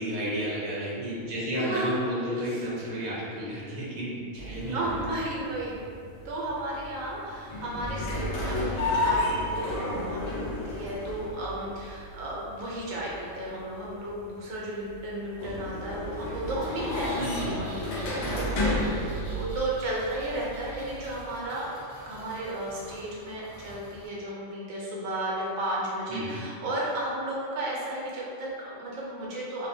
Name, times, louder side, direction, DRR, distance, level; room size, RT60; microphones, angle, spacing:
voice 1, 0.0-5.1 17.2-17.5 18.0-18.3 26.1-26.4, equal, 50° right, -8 dB, 0.6 m, -32 dB
voice 2, 1.6-2.0 2.3-2.6 4.7-5.8 6.2-21.7 22.1-29.7, right 1 dB, 80° right, -4 dB, 1.0 m, -34 dB
sound 1, 4.4-21.4, left 1 dB, 70° left, 0.9 m, -33 dB
Engine, 16.6-24.1, equal, 5° right, 0.4 m, -47 dB
2.6 x 2.0 x 2.6 m, 2.4 s
omnidirectional pair, 1.4 m